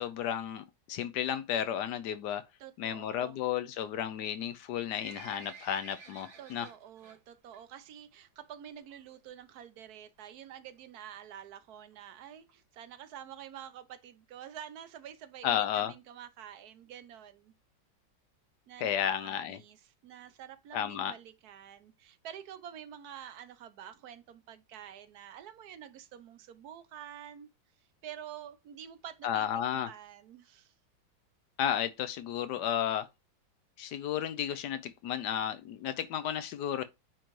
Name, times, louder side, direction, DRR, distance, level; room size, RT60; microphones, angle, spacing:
voice 1, 0.0-2.4 2.8-6.7 15.4-15.9 18.8-19.6 20.7-21.1 29.2-29.9 31.6-33.1 33.8-36.8, left 10 dB, 75° left, 1.1 m, -33 dB
voice 2, 2.6-3.4 6.4-17.5 18.7-27.5 27.8-29.5 29.7-30.7, right 9 dB, 65° right, 1.1 m, -48 dB
Livestock farm animals working animals, 4.5-7.2 7.5-7.8 8.1-8.2 8.9-9.0 9.3-9.4 9.5-9.6 10.2-10.4 11.0-11.1 11.3-11.4 11.6-11.7 11.9-12.0 12.5-12.6 13.1-13.2 13.6-13.7, right 5 dB, 90° right, 2.5 m, -51 dB
8.9 x 3.8 x 3.1 m
omnidirectional pair, 2.0 m